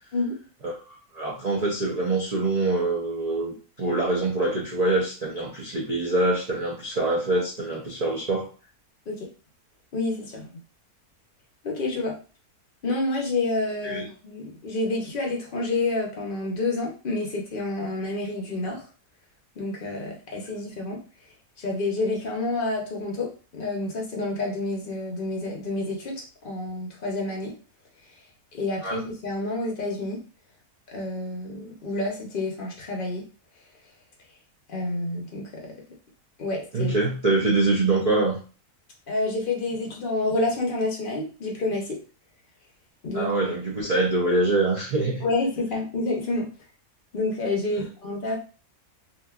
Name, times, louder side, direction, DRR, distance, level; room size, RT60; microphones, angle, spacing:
voice 1, 1.1-8.5 13.8-14.1 28.8-29.0 36.7-38.4 43.1-45.3, right 2 dB, 80° right, -4 dB, 0.3 m, -24 dB
voice 2, 9.9-10.5 11.6-12.1 12.8-18.8 19.6-21.0 21.6-27.5 28.5-30.2 30.9-33.2 34.7-35.7 36.4-36.9 39.1-42.0 43.0-43.3 45.2-46.5 47.1-48.4, left 2 dB, 50° left, 0 dB, 0.6 m, -28 dB
2.8 x 2.5 x 2.3 m, 0.36 s
omnidirectional pair, 1.6 m